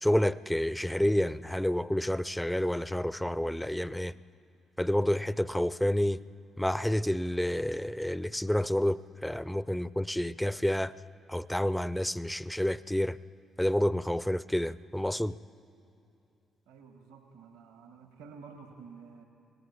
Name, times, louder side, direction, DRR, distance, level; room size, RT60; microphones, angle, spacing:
voice 1, 0.0-4.1 4.8-6.2 6.6-10.9 11.3-13.2 13.6-15.4, left 1 dB, 5° left, 0.7 m, -29 dB
voice 2, 16.7-19.2, right 5 dB, 75° right, 1.7 m, -50 dB
23.5 x 19.0 x 8.8 m
figure-of-eight pair, 40°, 0 cm